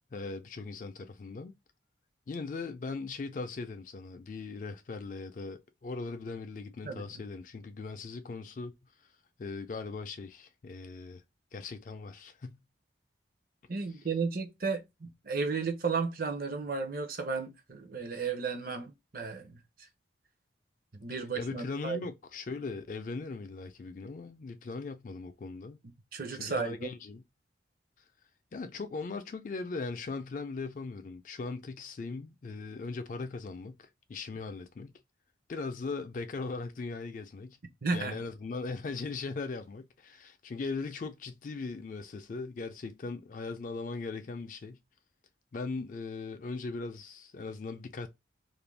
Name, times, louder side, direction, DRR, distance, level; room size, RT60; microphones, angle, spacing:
voice 1, 0.1-1.5 2.3-8.7 9.4-11.2 11.5-12.7 21.4-25.8 26.4-27.2 28.5-35.0 35.5-37.6 37.9-44.8 45.5-48.1, left 4 dB, 45° left, 0.3 m, -39 dB
voice 2, 13.7-19.6 20.9-22.0 26.1-26.9 37.8-38.2, right 4 dB, 50° right, 0.6 m, -34 dB
2.5 x 2.1 x 3.1 m
head